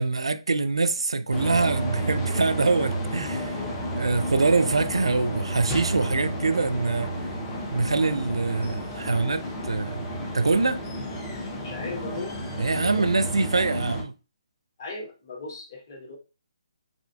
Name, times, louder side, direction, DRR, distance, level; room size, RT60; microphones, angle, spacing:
voice 1, 0.0-3.6 3.9-7.1 7.7-10.1 10.3-10.8 12.6-14.1, right 3 dB, 70° right, 0.4 m, -24 dB
sound 1, 1.3-14.0, equal, 15° left, 0.6 m, -31 dB
voice 2, 11.6-12.4 12.7-13.1 14.8-16.2, left 3 dB, 40° left, 1.0 m, -37 dB
6.1 x 2.4 x 2.3 m
figure-of-eight pair, 140°, 3 cm